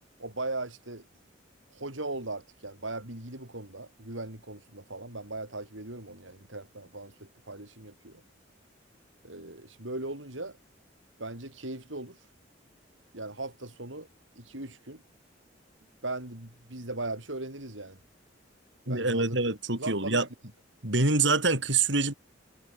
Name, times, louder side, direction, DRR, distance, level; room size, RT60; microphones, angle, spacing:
voice 1, 0.2-1.1 1.7-8.2 9.2-10.6 11.2-12.2 13.1-14.1 14.4-15.0 16.0-18.0 18.9-19.4 19.7-20.3, right 2 dB, 90° right, 6.5 m, -38 dB
voice 2, 18.9-20.3 20.8-22.1, right 3 dB, 70° right, 7.3 m, -25 dB
head